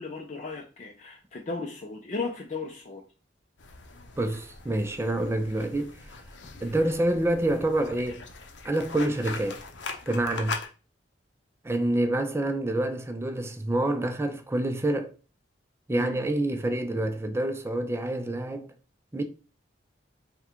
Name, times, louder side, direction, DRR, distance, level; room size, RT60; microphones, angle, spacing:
voice 1, 0.0-3.0 15.9-16.2, left 3 dB, 40° left, 0.5 m, -35 dB
sound 1, 3.6-10.7, left 4 dB, 75° left, 0.7 m, -41 dB
voice 2, 4.2-6.0 6.6-8.2 8.6-9.6 10.1-10.6 11.6-15.2 15.9-18.7 19.1-19.2, right 1 dB, 15° right, 0.4 m, -27 dB
3.7 x 2.2 x 4.3 m
head